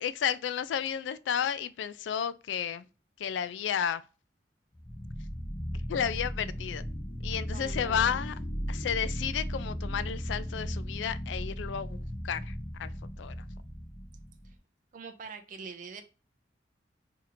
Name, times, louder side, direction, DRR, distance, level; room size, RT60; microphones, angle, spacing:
voice 1, 0.0-2.9 3.2-4.0 5.9-6.8 7.2-8.3 8.7-12.0 12.2-12.9 13.2-13.3, left 8 dB, 85° left, 0.3 m, -32 dB
sound 1, 4.7-14.6, equal, 20° left, 0.5 m, -36 dB
voice 2, 7.5-8.2 14.4-14.5 14.9-16.0, right 4 dB, 50° right, 0.4 m, -43 dB
2.8 x 2.6 x 4.0 m
head